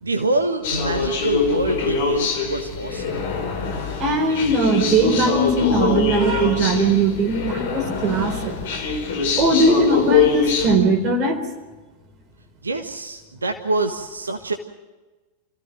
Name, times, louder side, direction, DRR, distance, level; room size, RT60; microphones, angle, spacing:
voice 1, 0.0-3.2 12.6-14.6, right 2 dB, 75° right, 5 dB, 1.4 m, -25 dB
sound 1, 0.6-10.7, left 5 dB, 55° left, 4.3 m, -23 dB
voice 2, 4.0-8.6 9.2-11.4, right 2 dB, 35° right, 6 dB, 4.3 m, -19 dB
27.0 x 16.0 x 7.8 m, 1.2 s
figure-of-eight pair, 90°, 0 cm